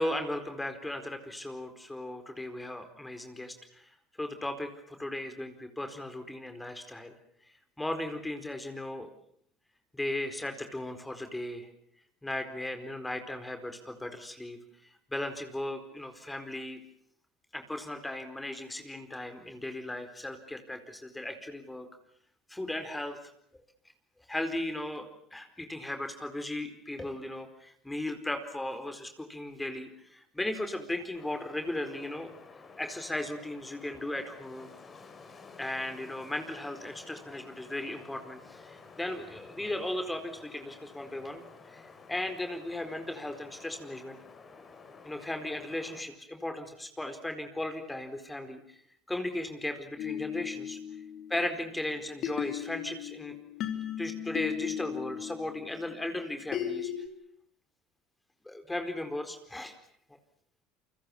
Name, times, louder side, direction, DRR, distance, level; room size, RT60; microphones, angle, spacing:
voice 1, 0.0-3.9 4.2-7.1 7.8-9.1 9.9-11.7 12.2-14.6 15.1-16.8 17.5-21.9 22.5-23.2 23.5-23.6 24.3-32.3 32.8-34.7 35.6-41.5 41.7-41.8 42.1-44.2 45.0-48.8 49.1-50.8 51.3-53.4 54.0-56.9 58.5-59.7, left 1 dB, 10° left, 7 dB, 4.5 m, -36 dB
Wind, 31.1-46.0, left 4 dB, 35° left, 5.8 m, -52 dB
sound 1, 50.0-51.8 52.2-57.1, left 9 dB, 55° left, 4.0 m, -36 dB
29.5 x 24.5 x 7.2 m, 0.67 s
hypercardioid pair, 75°, 0 cm